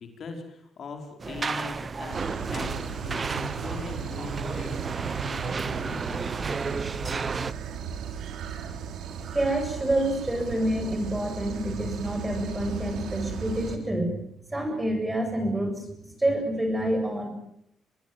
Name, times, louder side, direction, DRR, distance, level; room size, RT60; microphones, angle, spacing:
voice 1, 0.0-6.8, left 4 dB, 55° left, 4 dB, 5.1 m, -41 dB
sound 1, 1.2-7.5, right 4 dB, 35° right, 0.9 m, -32 dB
sound 2, 2.1-13.8, right 7 dB, 75° right, 3.1 m, -36 dB
voice 2, 9.3-14.2 14.5-17.3, right 1 dB, 15° right, 5 dB, 8.0 m, -27 dB
25.0 x 20.0 x 7.8 m, 0.73 s
cardioid pair, 90°, 0 cm